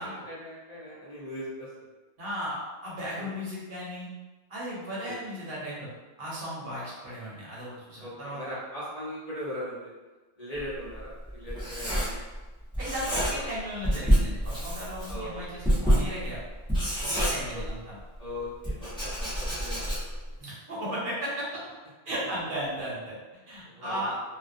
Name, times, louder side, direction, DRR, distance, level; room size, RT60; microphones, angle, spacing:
voice 1, 0.0-1.9 3.2-3.3 5.0-5.1 8.0-9.9 10.4-12.2 13.0-13.5 15.1-15.6 17.5-17.6 18.2-20.3 23.6-24.1, left 1 dB, 40° left, -10 dB, 0.9 m, -40 dB
voice 2, 2.2-4.1 4.5-5.9 6.2-8.5 12.8-16.4 17.0-18.0 20.4-21.6 22.1-24.2, equal, 60° right, -7 dB, 0.9 m, -35 dB
Writing, 10.6-12.5 12.7-13.6 13.8-18.0 18.6-20.3, equal, 5° left, 0.7 m, -27 dB
2.3 x 2.2 x 2.5 m, 1.2 s
omnidirectional pair, 1.1 m